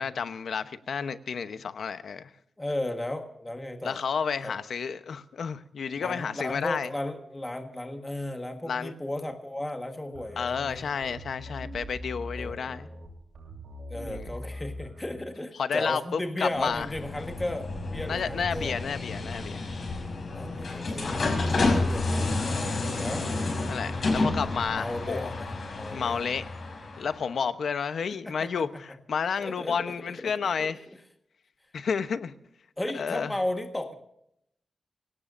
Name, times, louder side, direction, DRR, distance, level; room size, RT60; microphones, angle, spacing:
voice 1, 0.0-2.3 3.8-6.9 8.6-8.9 10.4-12.9 14.1-14.3 15.6-16.9 18.1-19.7 21.5-22.0 23.7-25.4 25.9-26.5 27.0-30.8 31.7-32.3 32.9-33.3, left 6 dB, 75° left, 0.9 m, -31 dB
voice 2, 2.6-4.0 4.4-4.5 6.0-11.2 12.3-13.0 13.9-18.8 20.3-23.3 24.8-26.2 28.2-28.5 29.4-29.7 30.6-30.7 32.8-33.9, left 1 dB, 15° left, 1.5 m, -35 dB
sound 1, 10.1-15.2, equal, 80° right, 7.0 m, -41 dB
sound 2, 16.6-27.3, left 2 dB, 55° left, 5.6 m, -30 dB
25.0 x 17.5 x 2.6 m
wide cardioid pair, 155°, 0 cm